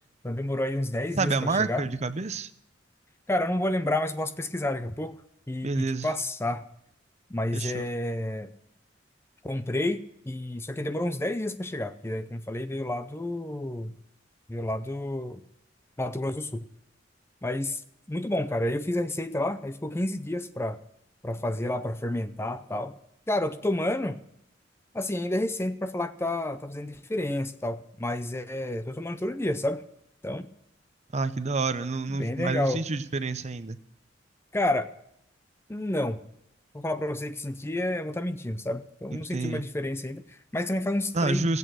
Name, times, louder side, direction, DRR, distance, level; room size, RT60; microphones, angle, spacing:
voice 1, 0.2-1.8 3.3-5.2 5.5-6.6 7.3-8.5 9.4-10.0 10.3-13.9 14.5-15.4 16.0-16.7 17.4-17.8 18.1-20.8 21.2-23.0 23.3-24.2 24.9-29.8 30.2-30.5 32.1-32.8 34.5-34.9 35.7-36.2 36.7-41.5, left 1 dB, 15° left, 11 dB, 0.6 m, -30 dB
voice 2, 1.2-2.5 5.6-6.1 7.5-7.8 31.1-33.8 39.3-39.6 41.1-41.6, right 3 dB, 35° right, 12 dB, 0.7 m, -28 dB
16.0 x 8.2 x 6.2 m, 0.80 s
head